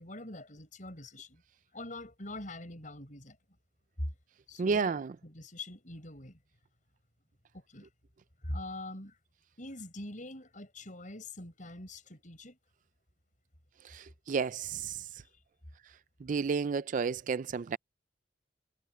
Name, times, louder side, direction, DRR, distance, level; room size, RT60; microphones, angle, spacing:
voice 1, 0.0-1.4 1.7-3.4 4.0-4.1 4.5-6.4 7.5-7.9 8.4-9.2 9.6-12.6, left 1 dB, 45° left, 7.3 m, -43 dB
voice 2, 4.6-5.2 13.8-15.1 16.2-17.8, right 5 dB, 45° right, 0.4 m, -31 dB
head